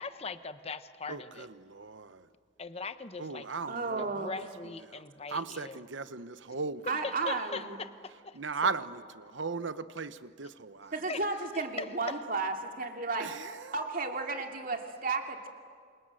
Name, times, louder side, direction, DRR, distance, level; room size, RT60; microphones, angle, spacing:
voice 1, 0.0-1.5 2.6-3.5 4.0-5.8 7.0-8.4 11.1-11.2 11.5-12.2, left 4 dB, 30° left, 11 dB, 1.0 m, -40 dB
voice 2, 1.1-2.3 3.2-4.1 4.9-5.0 5.3-6.8 8.3-11.0 13.2-13.8, right 4 dB, 70° right, 13 dB, 1.0 m, -37 dB
voice 3, 3.7-4.3 6.9-7.8 10.9-13.3 13.7-15.5, right 3 dB, 45° right, 4 dB, 2.6 m, -33 dB
28.0 x 27.5 x 7.8 m, 2.1 s
head